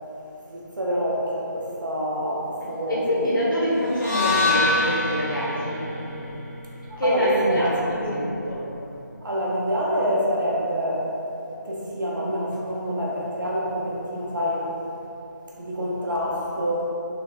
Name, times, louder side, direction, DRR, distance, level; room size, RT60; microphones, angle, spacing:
voice 1, 0.5-3.5 6.9-8.2 9.2-11.1 11.6-14.7 15.6-16.9, equal, 75° right, -5 dB, 0.9 m, -27 dB
voice 2, 2.9-6.4 7.0-8.6, equal, 80° left, -8 dB, 1.3 m, -25 dB
sound 1, 3.9-8.1, left 2 dB, 40° left, 1.5 m, -26 dB
4.1 x 2.9 x 2.3 m, 2.9 s
figure-of-eight pair, 155°, 11 cm